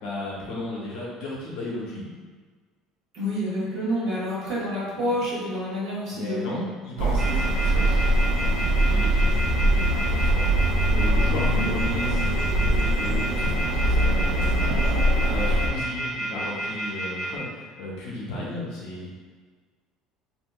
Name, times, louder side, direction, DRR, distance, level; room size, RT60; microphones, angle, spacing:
voice 1, 0.0-2.1 4.9-5.1 6.1-8.0 8.7-10.5 10.9-19.1, left 1 dB, 60° left, -5 dB, 1.0 m, -35 dB
voice 2, 3.1-6.5 11.5-11.7, equal, 40° right, -7 dB, 1.0 m, -28 dB
sound 1, 7.0-15.7, right 1 dB, 85° right, 0.5 m, -22 dB
sound 2, 7.2-17.3, right 1 dB, 5° right, 1.1 m, -30 dB
3.4 x 2.7 x 2.2 m, 1.5 s
cardioid pair, 165°, 0 cm